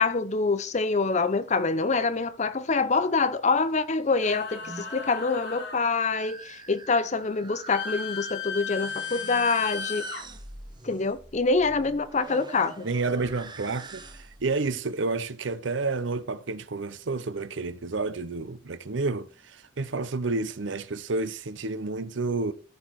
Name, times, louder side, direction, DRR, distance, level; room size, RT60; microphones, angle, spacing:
voice 1, 0.0-10.1 10.8-12.9, left 4 dB, 35° left, 0.6 m, -25 dB
sound 1, 4.2-5.8 7.7-10.2, left 6 dB, 70° left, 5.1 m, -35 dB
sound 2, 4.6-14.5, right 3 dB, 25° right, 0.9 m, -45 dB
voice 2, 12.8-22.5, right 3 dB, 70° right, 0.7 m, -30 dB
13.5 x 4.8 x 4.6 m
head